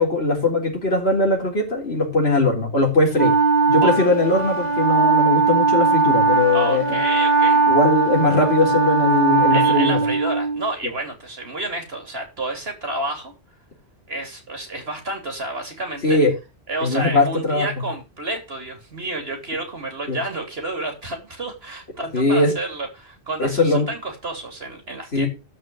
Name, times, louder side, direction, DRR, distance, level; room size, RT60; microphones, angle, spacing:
voice 1, 0.0-3.3 3.7-7.0 7.7-10.0 16.0-16.3 16.8-17.7 20.1-20.2 22.1-22.5 23.4-23.9 25.1-25.3, left 2 dB, 65° left, 0 dB, 4.1 m, -20 dB
Wind instrument woodwind instrument, 3.2-10.7, right 4 dB, 40° right, 1.3 m, -19 dB
voice 2, 6.5-7.6 9.5-13.3 14.1-16.2 16.7-25.3, right 2 dB, 65° right, 4 dB, 3.5 m, -30 dB
12.5 x 4.5 x 7.7 m, 0.28 s
omnidirectional pair, 1.1 m